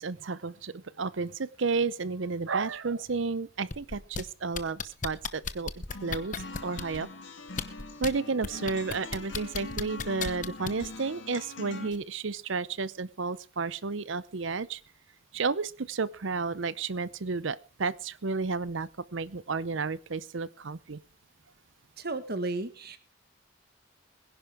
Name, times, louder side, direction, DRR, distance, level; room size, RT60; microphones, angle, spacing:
voice 1, 0.0-5.7 6.0-7.1 8.0-14.8 15.3-21.0, right 4 dB, 65° right, 19 dB, 0.7 m, -32 dB
sound 1, 3.7-4.2 4.5-7.0 7.5-8.1 8.4-10.9 11.9-12.0, left 5 dB, 40° left, 0.9 m, -34 dB
sound 2, 5.9-11.9, left 2 dB, 65° left, 2.2 m, -43 dB
voice 2, 22.0-23.0, right 2 dB, 50° right, 12 dB, 1.4 m, -33 dB
21.5 x 10.5 x 3.5 m, 0.32 s
head